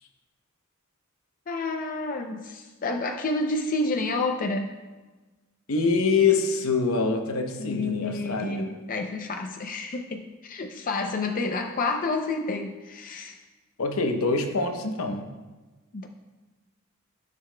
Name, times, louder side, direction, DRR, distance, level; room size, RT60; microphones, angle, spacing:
voice 1, 1.5-4.7 7.6-13.4 15.9-16.1, left 3 dB, 40° left, 3 dB, 0.5 m, -29 dB
voice 2, 5.7-8.7 13.8-15.3, left 4 dB, 70° left, 5 dB, 0.8 m, -25 dB
13.0 x 6.7 x 2.2 m, 1.2 s
head